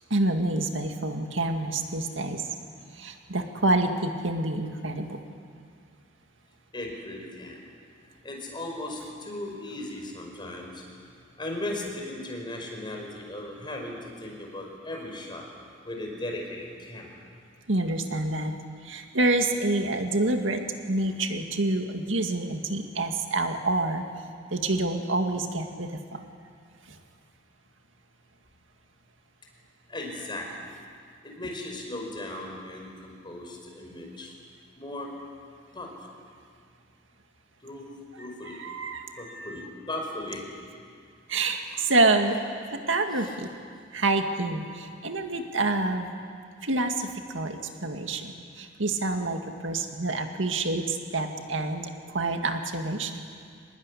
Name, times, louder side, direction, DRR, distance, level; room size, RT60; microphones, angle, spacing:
voice 1, 0.1-2.5 2.9-5.2 17.7-18.5 18.8-20.6 20.9-24.0 24.5-26.2 26.9-27.0 38.2-39.7 41.3-42.4 42.7-43.5 43.9-46.1 46.6-53.2, right 2 dB, 75° right, 4 dB, 2.1 m, -27 dB
voice 2, 6.7-7.6 8.2-10.8 11.4-15.5 15.8-17.2 29.9-30.8 31.2-34.3 34.8-35.1 35.7-35.9 37.6-38.6 39.2-40.4 41.6-41.8, left 1 dB, 25° left, 1 dB, 5.4 m, -37 dB
24.5 x 20.5 x 10.0 m, 2.2 s
head